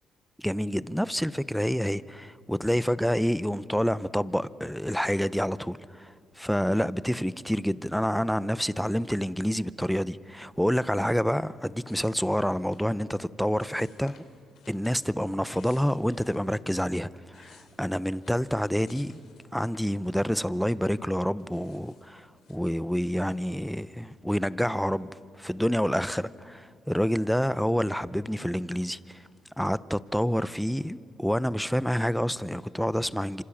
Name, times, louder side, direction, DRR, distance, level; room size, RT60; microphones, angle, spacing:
voice 1, 0.4-14.2 14.7-19.2 19.5-25.1 25.4-29.2 29.6-33.4, equal, ahead, 0.7 m, -28 dB
sound 1, 11.9-13.0 13.6-15.0 15.3-16.5 17.0-20.6 20.9-22.7, left 7 dB, 75° left, 2.9 m, -58 dB
27.5 x 26.0 x 7.3 m
cardioid pair, 90°, 0 cm